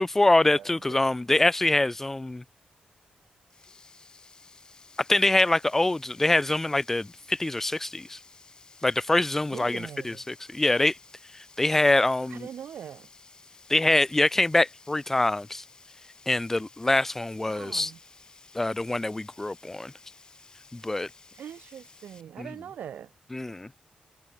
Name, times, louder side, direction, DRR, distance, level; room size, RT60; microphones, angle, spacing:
voice 1, 0.0-2.4 5.1-8.2 8.8-11.0 11.3-12.5 13.7-15.6 16.3-17.9 18.5-19.9 20.7-21.1 22.4-22.5 23.3-23.7, left 2 dB, 15° left, 0.5 m, -24 dB
Sink (filling or washing), 3.5-22.2, left 4 dB, 30° left, 5.2 m, -54 dB
voice 2, 9.5-10.2 12.3-13.1 17.5-18.0 21.4-23.1, right 9 dB, 90° right, 2.0 m, -42 dB
wide cardioid pair, 140°, 3 cm